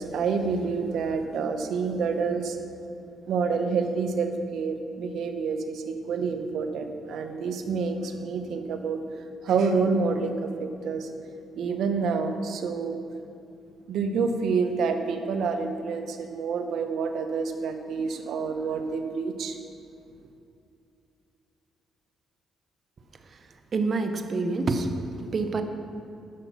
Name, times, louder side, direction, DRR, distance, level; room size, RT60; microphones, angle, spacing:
voice 1, 0.0-2.6 3.3-9.0 9.4-11.1 11.6-13.0 13.9-19.6, right 5 dB, 75° right, 6 dB, 0.9 m, -28 dB
voice 2, 23.7-24.9 25.3-25.6, right 3 dB, 45° right, 7 dB, 0.9 m, -26 dB
10.0 x 7.1 x 5.6 m, 2.6 s
cardioid pair, 90°, 0 cm